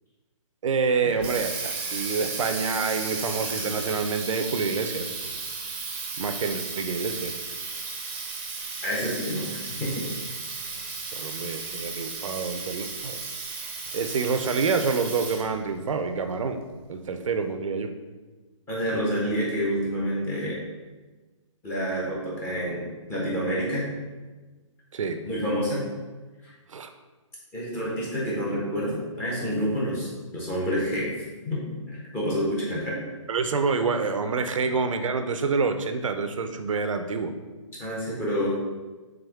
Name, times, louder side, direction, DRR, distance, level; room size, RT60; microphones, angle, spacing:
voice 1, 0.6-5.1 6.2-7.4 11.1-13.2 13.9-16.6 16.9-17.9 24.9-25.2 26.7-26.9 33.3-37.3, right 5 dB, 80° right, 8 dB, 0.5 m, -27 dB
Water tap faucet, 0.9-15.6, right 4 dB, 25° right, 0.6 m, -34 dB
voice 2, 8.8-10.0 18.7-20.6 21.6-22.8 23.1-23.8 25.2-25.8 26.4-26.5 27.5-31.1 31.4-31.6 32.1-33.0 37.8-38.6, equal, 15° left, -6 dB, 1.0 m, -28 dB
3.5 x 3.5 x 3.4 m, 1.3 s
hypercardioid pair, 160°, 16 cm